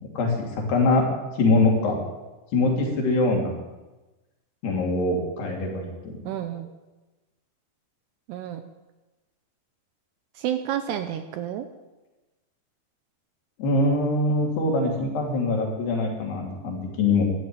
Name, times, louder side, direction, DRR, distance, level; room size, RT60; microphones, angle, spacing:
voice 1, 0.2-1.0 1.4-2.0 2.5-3.5 4.6-6.3 13.6-17.2, left 2 dB, 65° left, 0 dB, 4.7 m, -23 dB
voice 2, 6.2-6.7 8.3-8.6 10.4-11.7, right 10 dB, 80° right, 9 dB, 2.6 m, -30 dB
12.5 x 12.0 x 9.0 m, 1.1 s
omnidirectional pair, 5.3 m